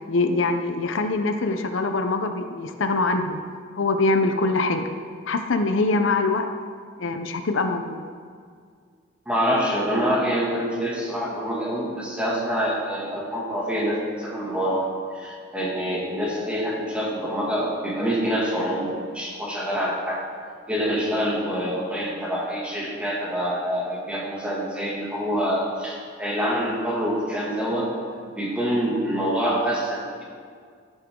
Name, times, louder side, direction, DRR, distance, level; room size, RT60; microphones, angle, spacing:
voice 1, 0.1-3.4 3.8-4.9 5.3-6.5 7.0-8.0, left 3 dB, 85° left, 6 dB, 0.7 m, -23 dB
voice 2, 9.3-20.2 20.7-27.9 28.4-30.2, equal, 5° right, -5 dB, 2.2 m, -26 dB
13.5 x 9.0 x 3.8 m, 2.1 s
head